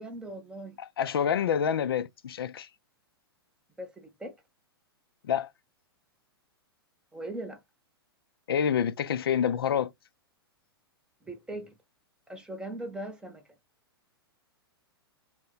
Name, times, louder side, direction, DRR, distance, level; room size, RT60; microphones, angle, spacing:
voice 1, 0.0-0.8 3.8-4.4 7.1-7.6 11.2-11.8 12.3-13.4, right 1 dB, 5° right, 0.8 m, -39 dB
voice 2, 0.8-2.7 5.2-5.5 8.5-9.9, left 8 dB, 65° left, 0.4 m, -27 dB
2.8 x 2.2 x 3.8 m
figure-of-eight pair, 105°, 13 cm